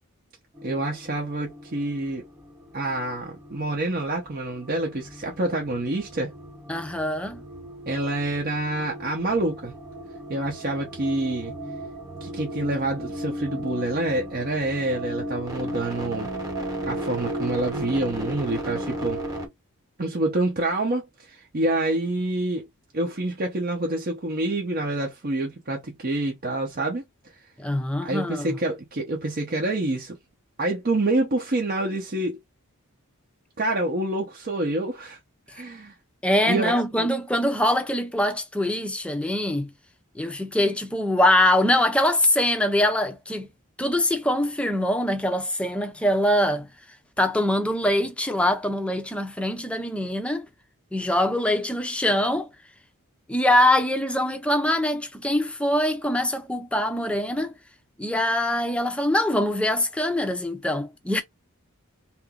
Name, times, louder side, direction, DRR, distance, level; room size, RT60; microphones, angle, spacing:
sound 1, 0.5-19.5, right 1 dB, 15° right, 1.0 m, -36 dB
voice 1, 0.6-2.2 2.7-6.3 7.9-9.7 10.3-11.5 12.2-16.4 16.9-19.2 20.0-22.7 22.9-27.0 28.0-30.2 30.6-32.4 33.6-35.2 35.5-35.9 36.4-36.7 37.0-37.1, right 2 dB, 45° right, 0.7 m, -27 dB
voice 2, 6.7-7.4 27.6-28.6 36.2-39.7 40.1-43.5 43.8-46.7 47.2-50.5 50.9-52.5 53.3-57.5 58.0-61.2, left 1 dB, 5° left, 0.5 m, -23 dB
2.8 x 2.6 x 3.6 m
head